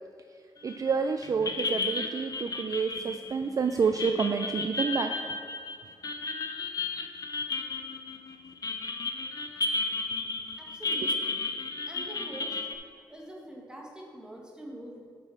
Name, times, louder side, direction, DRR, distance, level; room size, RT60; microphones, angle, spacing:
voice 1, 0.6-5.3, right 5 dB, 40° right, 7 dB, 0.4 m, -29 dB
sound 1, 0.7-0.9 1.2-12.7, left 3 dB, 45° left, 0.8 m, -33 dB
voice 2, 10.6-11.4 11.9-12.6 13.1-15.0, right 1 dB, 10° right, -2 dB, 1.7 m, -44 dB
7.5 x 5.4 x 5.7 m, 2.2 s
cardioid pair, 90°, 9 cm